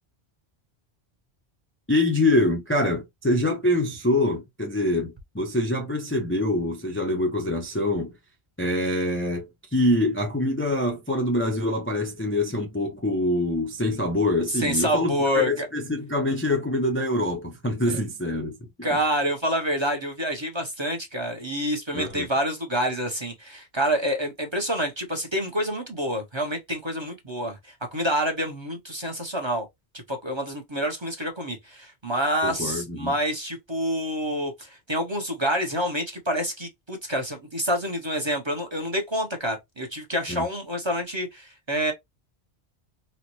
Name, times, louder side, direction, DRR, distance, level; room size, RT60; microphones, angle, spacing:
voice 1, 1.9-8.1 8.6-18.6 21.9-22.2 32.4-33.1 40.3-40.5, left 1 dB, 15° left, 0.4 m, -25 dB
voice 2, 14.5-15.7 17.9-18.0 18.8-29.7 30.1-41.9, equal, 30° right, 0.7 m, -27 dB
3.9 x 2.1 x 2.9 m
omnidirectional pair, 1.1 m